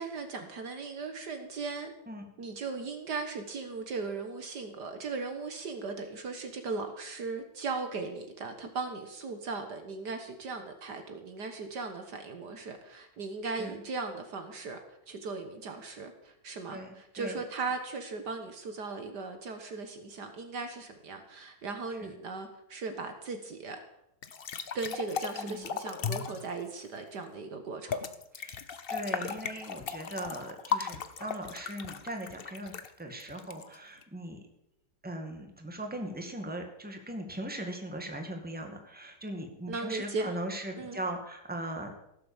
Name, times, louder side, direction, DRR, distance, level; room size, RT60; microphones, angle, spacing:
voice 1, 0.0-1.9 2.4-14.8 15.1-23.8 24.7-28.0 39.7-40.3 40.8-41.0, right 4 dB, 60° right, 6 dB, 1.9 m, -38 dB
voice 2, 13.4-13.7 16.7-17.4 22.0-22.1 25.4-25.6 28.3-28.6 28.9-34.4 35.0-41.9, right 1 dB, 5° right, 3 dB, 2.0 m, -39 dB
sound 1, 24.2-26.5 27.9-34.0, left 6 dB, 50° left, 0.7 m, -36 dB
17.0 x 7.8 x 7.2 m, 0.82 s
omnidirectional pair, 2.1 m